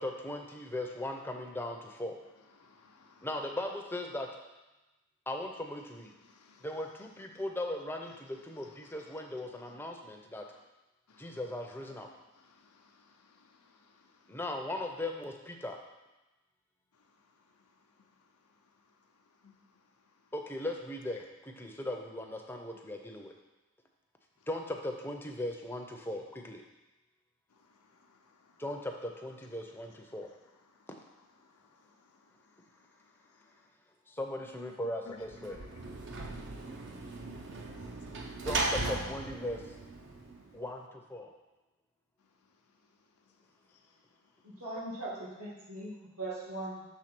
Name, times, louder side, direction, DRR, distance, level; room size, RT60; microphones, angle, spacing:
voice 1, 0.0-2.2 3.2-4.3 5.3-6.1 6.6-10.4 11.2-12.1 14.3-15.8 20.3-23.3 24.5-26.6 28.6-30.3 34.1-35.6 38.4-39.6 40.5-41.3, left 1 dB, 10° left, 0.6 m, -38 dB
voice 2, 2.2-3.5 5.8-7.4 8.2-9.9 10.3-10.7 11.1-14.4 16.9-20.3 21.2-21.3 23.3-23.4 24.4-24.5 27.5-28.7 29.7-33.7 34.8-38.5 40.0-40.6 42.2-44.6, left 3 dB, 80° left, 0.7 m, -63 dB
Sliding door / Slam, 35.2-40.6, right 2 dB, 50° right, 0.6 m, -37 dB
voice 3, 44.4-46.8, right 2 dB, 75° right, 1.8 m, -40 dB
6.3 x 3.6 x 6.0 m
head